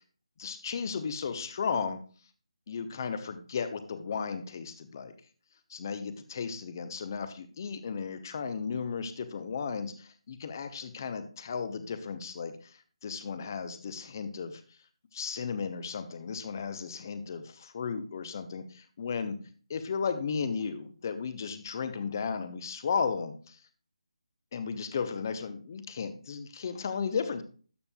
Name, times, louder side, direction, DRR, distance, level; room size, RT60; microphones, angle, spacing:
voice 1, 0.4-2.0 2.7-5.1 5.7-14.6 15.1-19.4 19.7-23.6 24.5-27.4, left 6 dB, 35° left, 11 dB, 0.8 m, -35 dB
12.0 x 6.9 x 2.3 m, 0.40 s
figure-of-eight pair, 155°, 3 cm